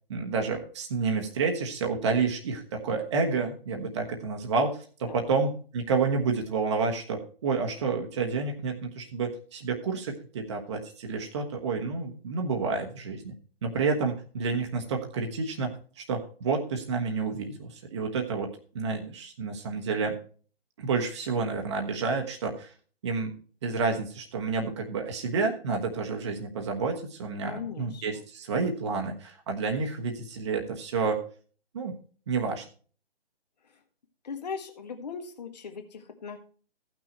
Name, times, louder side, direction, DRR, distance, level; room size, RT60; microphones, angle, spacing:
voice 1, 0.1-13.3 13.6-20.2 20.8-22.7 23.0-23.4 23.6-31.2 31.7-31.9 32.3-32.6, right 4 dB, 25° right, 2 dB, 1.2 m, -29 dB
voice 2, 5.1-5.4 27.4-28.2 33.6-33.8 34.2-36.4, left 6 dB, 40° left, 5 dB, 1.7 m, -39 dB
15.5 x 6.1 x 4.3 m, 0.42 s
figure-of-eight pair, 140°, 32 cm